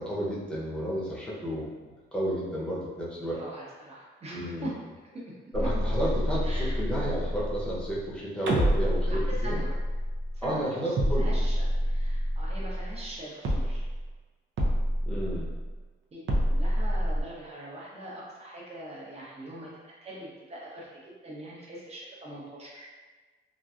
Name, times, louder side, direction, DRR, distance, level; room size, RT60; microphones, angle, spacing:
voice 1, 0.0-1.7 2.1-3.4 4.3-4.7 5.5-9.6 10.4-11.4 15.0-15.5, right 1 dB, 5° left, -7 dB, 0.8 m, -32 dB
voice 2, 3.3-4.7 5.1-5.2 5.6-5.7 6.4-7.0 9.1-9.7 10.3-13.8 16.1-16.2 16.5-20.9 21.2-22.9, right 1 dB, 30° right, -5 dB, 0.9 m, -42 dB
sound 1, 5.5-8.1 8.5-10.6 11.0-13.2 13.4-14.1 14.6-15.8 16.3-17.2, equal, 65° right, 0.6 m, -28 dB
3.0 x 2.6 x 2.4 m, 1.3 s
cardioid pair, 120°, 21 cm